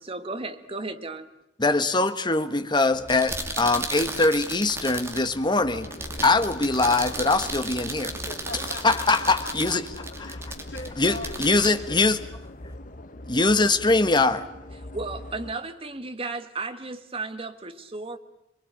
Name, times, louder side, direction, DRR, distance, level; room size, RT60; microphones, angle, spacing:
voice 1, 0.0-1.3 14.9-18.2, right 3 dB, 30° right, 1.5 m, -34 dB
voice 2, 1.6-5.9 6.2-8.1 8.8-9.8 11.0-12.2 13.3-14.5, left 3 dB, 25° left, 1.3 m, -22 dB
sound 1, 2.9-12.7, right 2 dB, 15° right, 2.7 m, -35 dB
sound 2, 5.6-15.5, left 1 dB, 45° left, 1.4 m, -41 dB
voice 3, 8.2-12.0, left 3 dB, 75° left, 3.7 m, -41 dB
27.5 x 21.5 x 9.0 m
head